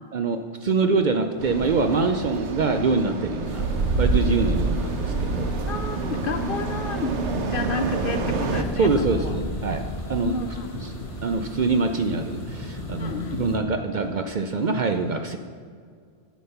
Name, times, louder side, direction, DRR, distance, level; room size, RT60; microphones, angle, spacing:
voice 1, 0.1-3.6 4.0-6.0 8.8-10.4 10.8-10.9 11.2-15.4, right 4 dB, 55° right, 7 dB, 0.6 m, -25 dB
sound 1, 1.4-8.6, right 3 dB, 90° right, 1.2 m, -27 dB
sound 2, 3.4-13.6, left 1 dB, 30° left, 1.3 m, -35 dB
voice 2, 5.7-9.4 10.2-11.0 13.0-13.4, left 3 dB, 55° left, 8 dB, 0.9 m, -31 dB
10.0 x 7.4 x 5.6 m, 2.1 s
omnidirectional pair, 1.1 m